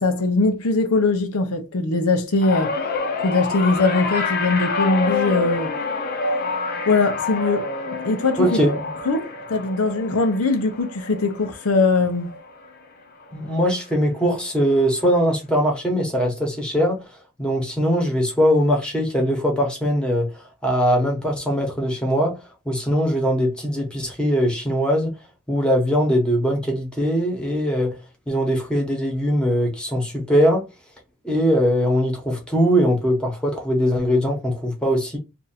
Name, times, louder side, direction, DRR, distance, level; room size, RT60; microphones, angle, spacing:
voice 1, 0.0-2.8 3.2-5.8 6.9-7.7 8.0-8.6 9.1-12.3, left 3 dB, 85° left, 0.7 m, -21 dB
sound 1, 2.4-12.9 13.2-13.6 14.7-14.8, left 3 dB, 45° left, 0.7 m, -28 dB
voice 2, 8.4-8.9 13.3-17.0 17.4-20.3 20.6-22.4 22.6-25.1 25.5-27.9 28.3-30.6 31.2-35.2, equal, 5° left, 1.0 m, -21 dB
2.7 x 2.5 x 4.0 m
head